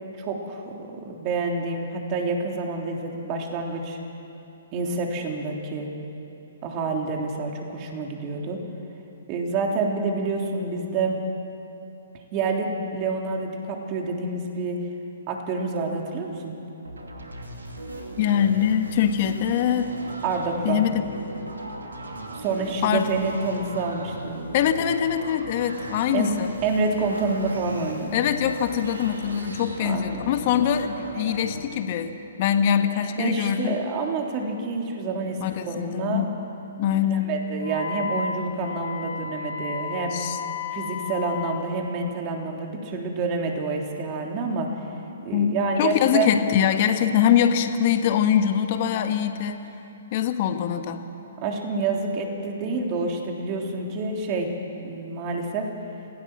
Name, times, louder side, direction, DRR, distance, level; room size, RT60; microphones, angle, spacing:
voice 1, 0.2-4.0 4.7-5.9 6.6-8.6 9.3-11.2 12.3-14.8 15.3-16.5 20.2-20.8 22.4-24.4 26.1-26.3 26.6-28.1 29.8-30.3 33.0-35.4 35.7-36.3 37.1-40.2 40.7-44.7 45.2-46.3 51.4-54.5 54.8-55.7, right 3 dB, 35° right, 1 dB, 3.4 m, -28 dB
sound 1, 16.8-31.6, right 1 dB, 90° right, 2.8 m, -37 dB
voice 2, 18.2-19.9 20.6-21.1 22.8-23.1 24.5-26.5 28.1-33.8 35.4-36.3 36.8-37.3 40.1-40.4 45.3-49.7 50.1-51.0, left 9 dB, 45° left, 7 dB, 1.5 m, -23 dB
Wind instrument woodwind instrument, 37.6-41.7, left 6 dB, 70° left, 3.0 m, -33 dB
26.5 x 16.5 x 7.5 m, 2.8 s
hypercardioid pair, 130°, 0 cm